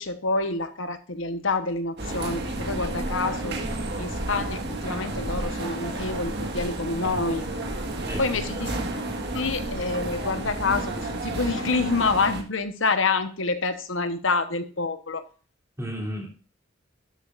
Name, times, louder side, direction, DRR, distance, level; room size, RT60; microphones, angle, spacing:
voice 1, 0.0-3.6 4.0-7.5 8.2-15.2, left 3 dB, 75° left, 10 dB, 1.1 m, -27 dB
sound 1, 2.0-12.4, right 2 dB, 55° right, 1.7 m, -31 dB
voice 2, 3.6-3.9 7.9-8.4 15.8-16.3, equal, 15° right, -2 dB, 3.1 m, -34 dB
11.5 x 8.1 x 2.5 m, 0.38 s
head